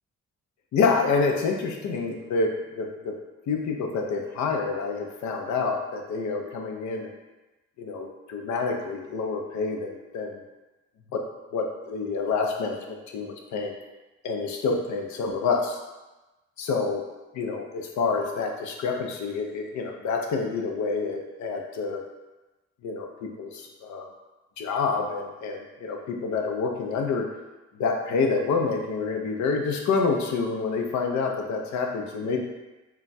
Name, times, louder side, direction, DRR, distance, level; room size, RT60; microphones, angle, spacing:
voice 1, 0.7-3.1 3.5-7.1 7.8-10.4 11.1-11.2 11.5-13.8 14.2-15.8 16.6-17.0 17.3-22.0 22.8-24.1 24.6-27.3 27.8-32.4, left 4 dB, 70° left, 2 dB, 0.5 m, -27 dB
2.3 x 2.2 x 3.9 m, 1.1 s
cardioid pair, 90°, 30 cm